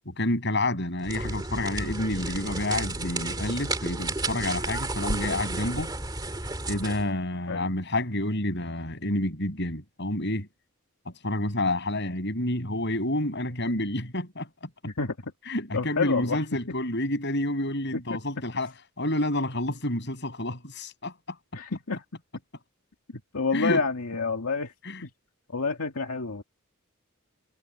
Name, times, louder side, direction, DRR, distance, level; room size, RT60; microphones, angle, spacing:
voice 1, 0.1-5.9 6.7-10.5 11.1-14.7 15.5-18.7 19.0-21.4 23.5-23.8 24.8-25.0, left 1 dB, 55° left, 7.5 m, -29 dB
sound 1, 1.0-7.1, right 2 dB, 20° right, 2.5 m, -32 dB
voice 2, 15.7-16.4 17.9-18.2 21.5-22.0 23.3-24.7 25.0-25.1 25.5-26.4, left 4 dB, 85° left, 2.1 m, -28 dB
head